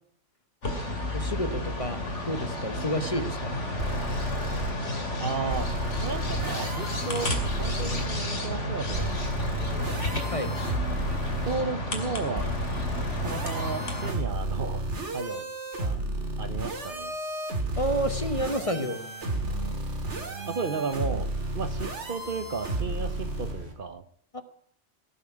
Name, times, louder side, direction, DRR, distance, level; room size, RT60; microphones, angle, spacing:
sound 1, 0.6-14.1, left 1 dB, 80° left, 3.0 m, -31 dB
voice 1, 1.1-2.0 2.2-3.6 10.3-10.5 17.8-19.0 24.3-24.4, equal, 30° left, 9 dB, 1.0 m, -30 dB
sound 2, 3.8-4.7 5.5-8.1 8.9-11.6 12.4-23.5, right 1 dB, 70° right, 2.4 m, -32 dB
voice 2, 5.2-5.7 6.0-9.3 9.6-10.0 11.4-12.7 13.2-14.8 15.1-15.5 15.8-16.0 16.4-17.2 20.4-21.3 21.5-24.0, right 4 dB, 50° right, 12 dB, 1.0 m, -34 dB
sound 3, 17.8-23.7, right 3 dB, 85° right, 3.1 m, -45 dB
18.0 x 7.2 x 9.7 m, 0.65 s
omnidirectional pair, 1.2 m